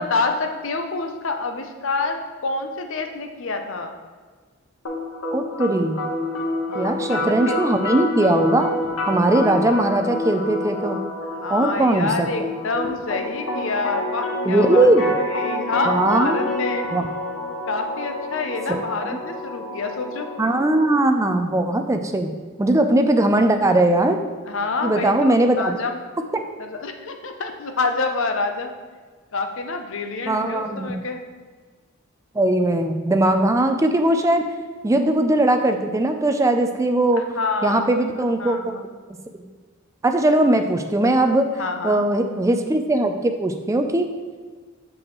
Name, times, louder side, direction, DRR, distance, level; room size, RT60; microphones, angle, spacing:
voice 1, 0.0-4.0 6.7-7.6 11.3-14.9 15.2-16.9 17.7-20.3 24.5-26.0 26.6-28.7 29.3-31.2 37.3-37.9 38.4-38.8 41.6-42.0, left 3 dB, 60° left, 5 dB, 0.6 m, -27 dB
sound 1, 4.8-20.8, left 2 dB, 80° left, 1.1 m, -28 dB
voice 2, 5.3-6.0 6.7-8.7 9.1-11.0 11.5-12.3 14.5-15.1 15.9-16.5 16.9-17.1 18.7-18.8 20.4-22.3 22.6-24.2 24.8-25.8 26.3-26.4 30.3-31.0 32.3-34.4 34.8-37.2 37.6-38.8 40.0-41.5 41.8-44.1, right 1 dB, 15° right, 6 dB, 0.3 m, -19 dB
6.2 x 6.2 x 3.1 m, 1.5 s
head